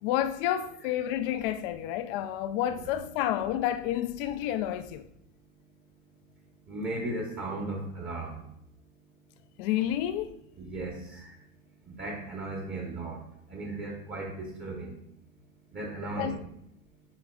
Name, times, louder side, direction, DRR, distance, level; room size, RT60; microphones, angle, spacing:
voice 1, 0.0-5.0 9.6-10.4 16.2-16.4, left 11 dB, 45° left, 0.5 m, -30 dB
voice 2, 6.7-8.4 10.6-11.3 11.8-13.2 13.5-14.9 15.7-16.4, right 2 dB, 25° right, 1.2 m, -36 dB
8.5 x 4.5 x 2.4 m
hypercardioid pair, 125°, 41 cm